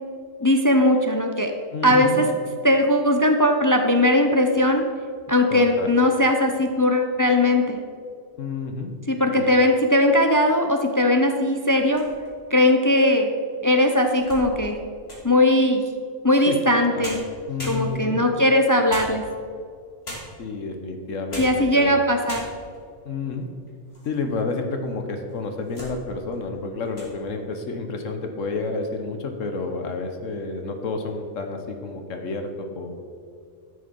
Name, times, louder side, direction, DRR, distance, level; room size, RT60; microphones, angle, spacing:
voice 1, 0.4-1.5 1.8-2.2 2.6-4.8 5.3-7.8 9.1-12.0 12.5-13.3 13.6-14.8 15.2-15.8 16.2-17.2 17.6-19.2 21.4-22.4, left 1 dB, 20° left, 4 dB, 0.5 m, -19 dB
voice 2, 1.7-2.3 5.5-6.0 8.4-8.9 9.4-9.6 16.3-16.6 16.9-17.1 17.5-18.3 20.4-22.0 23.0-23.5 24.0-33.0, left 3 dB, 80° left, 5 dB, 1.4 m, -30 dB
sound 1, 11.7-12.5 13.1-13.2 13.7-15.4 16.7-16.8 17.0-18.2 18.9-19.6 20.0-20.5 21.1-21.7 21.9-22.0 22.3-22.8 23.4-24.2 24.5-24.6 25.3-26.0 26.3-26.6 26.9-27.1, left 1 dB, 50° left, 2.9 m, -38 dB
13.0 x 6.7 x 5.3 m, 2.2 s
omnidirectional pair, 1.3 m